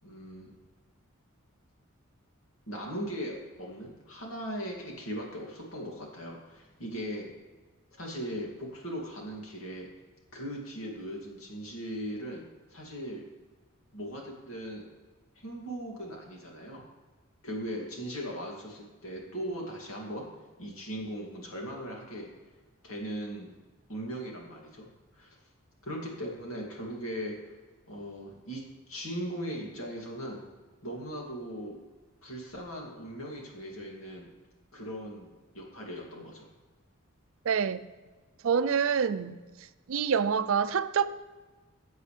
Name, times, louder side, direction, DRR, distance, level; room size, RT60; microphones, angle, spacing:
voice 1, 0.0-0.5 2.7-7.3 8.0-9.9 10.3-12.4 12.7-13.2 13.9-14.8 15.4-16.8 17.4-20.3 20.6-22.3 22.8-23.5 23.9-24.9 25.1-25.3 25.8-27.5 27.9-28.6 28.9-30.4 30.8-31.8 32.2-34.3 34.7-36.5, equal, 80° left, 2.6 m, -39 dB
voice 2, 37.5-37.8 38.4-39.4 39.9-41.1, right 6 dB, 70° right, 0.4 m, -26 dB
14.5 x 8.1 x 3.3 m
head